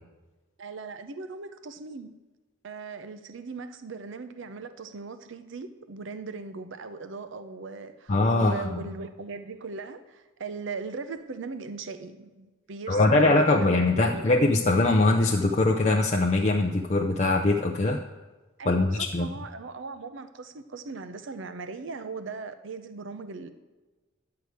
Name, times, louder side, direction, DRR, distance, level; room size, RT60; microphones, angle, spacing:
voice 1, 0.6-2.1 2.6-14.3 18.6-23.5, right 4 dB, 65° right, 10 dB, 0.6 m, -39 dB
voice 2, 8.1-8.6 12.9-18.0 18.7-19.3, left 2 dB, 35° left, 1 dB, 0.5 m, -22 dB
11.0 x 4.7 x 8.0 m, 1.3 s
head